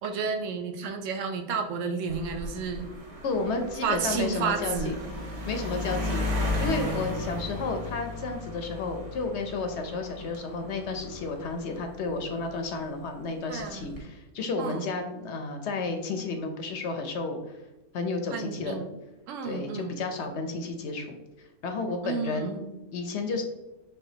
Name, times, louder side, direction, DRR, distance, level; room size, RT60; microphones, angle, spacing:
voice 1, 0.0-2.9 3.8-5.1 13.5-13.9 14.6-14.9 18.3-18.9 19.3-20.0 22.0-22.7, right 5 dB, 65° right, 5 dB, 0.8 m, -31 dB
sound 1, 2.1-12.8 13.6-14.0, left 2 dB, 35° right, 0.6 m, -35 dB
voice 2, 3.2-4.9 5.5-6.2 6.6-17.4 17.9-18.8 19.4-22.5 22.9-23.4, left 3 dB, 65° left, 5 dB, 0.7 m, -32 dB
6.4 x 2.5 x 2.8 m, 1.0 s
omnidirectional pair, 1.5 m